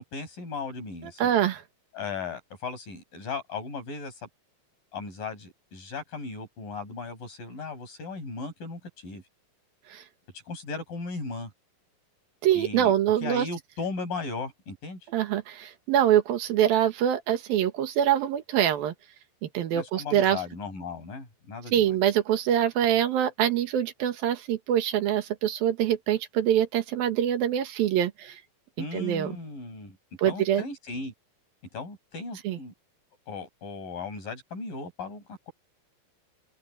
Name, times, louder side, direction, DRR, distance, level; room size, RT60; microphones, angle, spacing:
voice 1, 0.0-1.3 1.9-4.2 4.9-9.2 10.5-11.5 12.5-12.9 13.2-15.0 19.7-22.0 28.8-30.0 30.3-31.1 31.7-32.7 33.3-35.5, left 4 dB, 70° left, 8.9 m, -37 dB
voice 2, 1.2-1.6 9.9-10.0 12.4-13.5 15.1-18.9 19.5-20.4 21.7-28.4 28.9-29.3 30.2-30.6 32.4-32.6, right 10 dB, 80° right, 3.3 m, -24 dB
open air
omnidirectional pair, 4.1 m